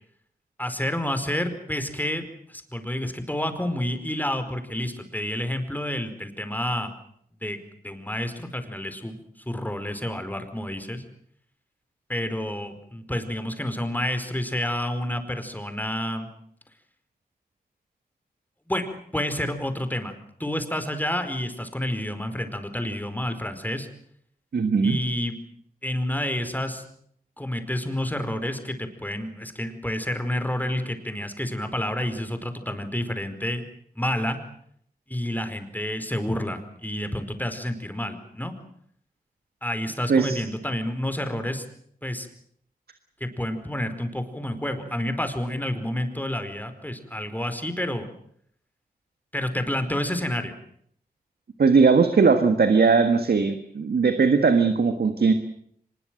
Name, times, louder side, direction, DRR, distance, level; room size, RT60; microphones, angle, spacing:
voice 1, 0.6-6.9 7.4-7.6 7.8-9.2 9.5-11.0 12.1-16.3 18.7-23.9 24.8-25.4 25.8-26.8 27.4-33.6 33.9-34.4 35.1-38.5 39.6-41.6 42.0-42.3 43.2-48.1 49.3-50.5, left 1 dB, 10° left, 8 dB, 4.7 m, -29 dB
voice 2, 24.5-25.0 40.1-40.4 51.6-55.3, right 5 dB, 85° right, 8 dB, 1.6 m, -19 dB
24.5 x 21.0 x 7.8 m, 0.67 s
cardioid pair, 50°, 16 cm